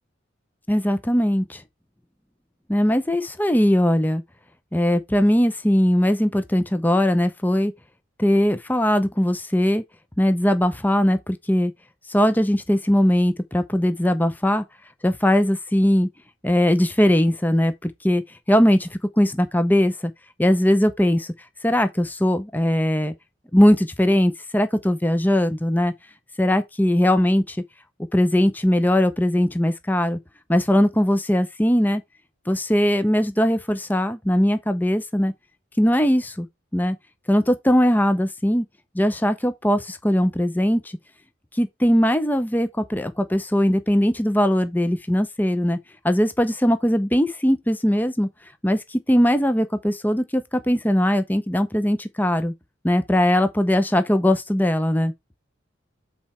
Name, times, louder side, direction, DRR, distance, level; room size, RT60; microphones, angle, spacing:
voice 1, 0.7-1.6 2.7-4.2 4.7-7.7 8.2-9.8 10.2-11.7 12.1-14.6 15.0-16.1 16.4-18.2 18.5-20.1 20.4-21.3 21.6-23.1 23.5-25.9 26.4-27.6 28.1-30.2 30.5-32.0 32.5-35.3 35.8-36.5 36.7-37.0 37.3-38.6 38.9-41.0 41.5-45.8 46.0-48.3 48.6-52.5 52.8-55.1, equal, 10° left, 0.7 m, -20 dB
7.8 x 4.2 x 4.4 m
head